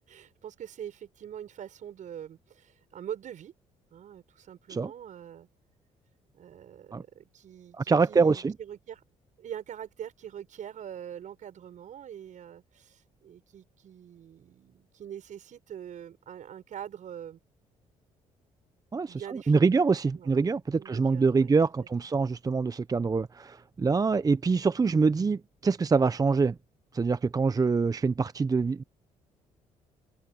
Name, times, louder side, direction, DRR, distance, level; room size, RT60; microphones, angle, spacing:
voice 1, 0.0-3.5 3.9-5.5 6.3-9.0 9.4-17.4 19.1-19.7 20.2-20.3 20.8-21.6, right 9 dB, 65° right, 6.6 m, -43 dB
voice 2, 7.8-8.5 18.9-26.6 26.9-28.8, right 4 dB, 25° right, 0.6 m, -25 dB
open air
supercardioid pair, 65°, 14 cm